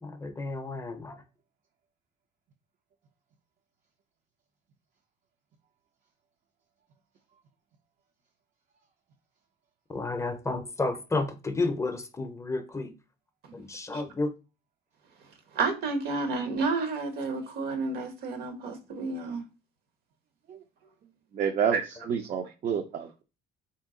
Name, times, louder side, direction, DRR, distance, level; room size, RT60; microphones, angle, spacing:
voice 1, 0.0-1.2 9.9-12.9 13.5-14.3, left 3 dB, 15° left, 0.5 m, -31 dB
voice 2, 15.5-19.4 21.7-21.8, right 4 dB, 70° right, 1.1 m, -30 dB
voice 3, 21.3-23.2, right 7 dB, 45° right, 0.5 m, -29 dB
3.4 x 2.7 x 3.7 m
cardioid pair, 110°, 17 cm